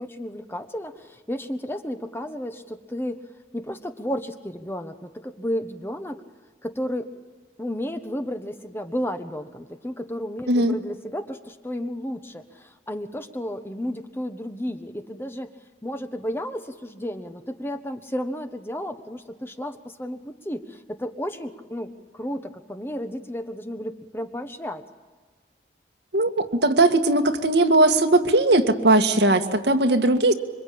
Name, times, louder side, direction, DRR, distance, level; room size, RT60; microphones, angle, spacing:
voice 1, 0.0-3.2 3.5-6.2 6.6-7.1 7.6-15.5 15.8-24.8, equal, 15° left, 7 dB, 1.2 m, -32 dB
voice 2, 26.1-30.3, right 2 dB, 75° right, 5 dB, 1.8 m, -19 dB
26.5 x 24.5 x 8.7 m, 1.4 s
head